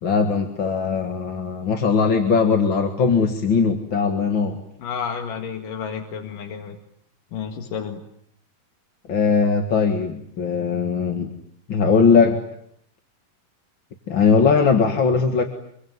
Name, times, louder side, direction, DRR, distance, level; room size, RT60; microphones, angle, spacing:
voice 1, 0.0-4.6 9.1-11.3 11.7-12.4 14.1-15.4, left 5 dB, 40° left, 4 dB, 2.2 m, -19 dB
voice 2, 4.8-6.8 7.3-8.0, left 7 dB, 85° left, 4 dB, 3.7 m, -31 dB
26.0 x 24.0 x 9.5 m, 0.69 s
omnidirectional pair, 3.7 m